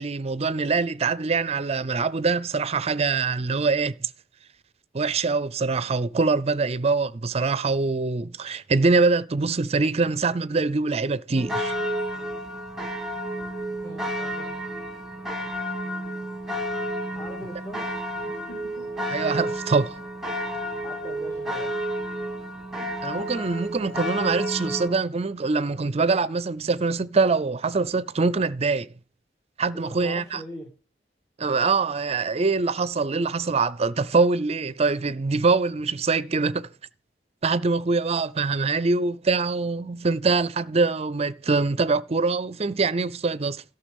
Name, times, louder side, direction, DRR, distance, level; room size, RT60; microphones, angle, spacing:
voice 1, 0.0-4.1 4.9-11.7 19.1-20.0 23.0-28.9 29.6-30.4 31.4-36.7 37.4-43.6, right 4 dB, 35° right, 0.5 m, -24 dB
sound 1, 11.3-24.9, equal, ahead, 2.0 m, -31 dB
voice 2, 13.8-14.6 17.1-18.9 20.8-21.8 22.8-22.9 29.7-30.7, equal, 15° left, 2.2 m, -42 dB
13.0 x 6.0 x 5.2 m
head